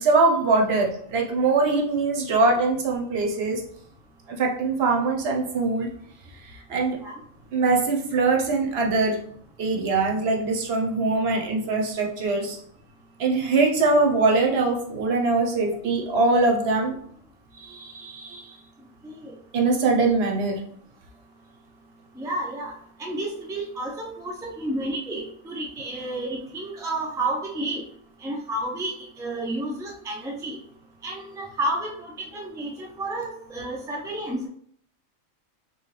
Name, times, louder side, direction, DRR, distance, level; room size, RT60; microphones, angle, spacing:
voice 1, 0.0-3.6 4.3-5.9 6.7-7.0 7.5-9.2 9.6-12.6 13.2-16.9 17.6-18.4 19.5-20.6, right 3 dB, 55° right, 1 dB, 0.9 m, -22 dB
voice 2, 19.0-19.3 22.2-22.7 23.0-27.8 28.2-30.6 31.0-34.5, right 1 dB, 5° right, -2 dB, 0.4 m, -31 dB
4.2 x 3.1 x 3.2 m, 0.63 s
omnidirectional pair, 1.4 m